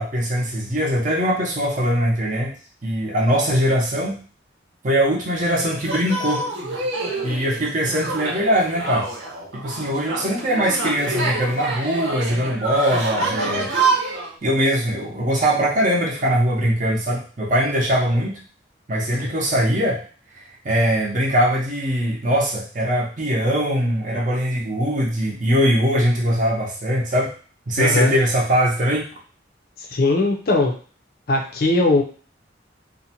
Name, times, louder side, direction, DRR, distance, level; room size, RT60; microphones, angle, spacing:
voice 1, 0.0-2.5 2.8-4.2 4.8-6.5 7.2-9.1 9.5-13.7 14.4-18.4 18.9-20.0 20.6-27.3 27.7-29.1, equal, 40° right, -3 dB, 0.6 m, -21 dB
sound 1, 5.8-14.3, right 2 dB, 80° right, 0.8 m, -26 dB
voice 2, 27.8-28.2 29.8-30.7 31.3-32.0, left 2 dB, 50° left, 2 dB, 0.5 m, -19 dB
2.5 x 2.1 x 2.8 m, 0.40 s
head